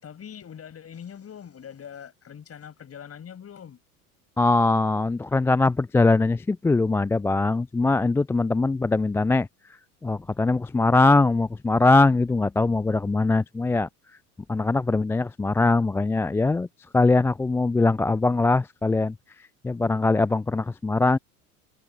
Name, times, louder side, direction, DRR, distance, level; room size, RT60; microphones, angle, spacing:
voice 1, 0.0-3.8, left 8 dB, 30° left, 7.4 m, -42 dB
voice 2, 4.4-9.5 10.0-13.9 14.5-16.7 16.9-19.1 19.6-21.2, left 3 dB, 5° left, 0.4 m, -21 dB
figure-of-eight pair, 75°, 46 cm